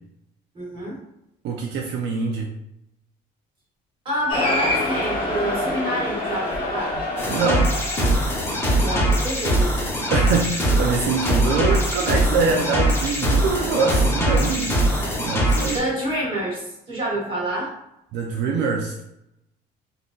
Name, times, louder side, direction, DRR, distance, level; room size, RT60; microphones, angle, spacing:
voice 1, 0.5-1.0 4.0-6.9 8.8-9.7 15.7-17.7, right 1 dB, 30° right, -6 dB, 1.5 m, -27 dB
voice 2, 1.4-2.5 7.3-7.7 10.1-14.8 15.2-15.8 18.1-19.0, right 4 dB, 75° right, 0 dB, 0.4 m, -24 dB
Cheering, 4.3-9.1, left 1 dB, 30° left, 0.9 m, -27 dB
sound 1, 7.2-15.8, right 1 dB, 15° left, 0.7 m, -21 dB
3.6 x 2.6 x 2.3 m, 0.83 s
cardioid pair, 165°, 18 cm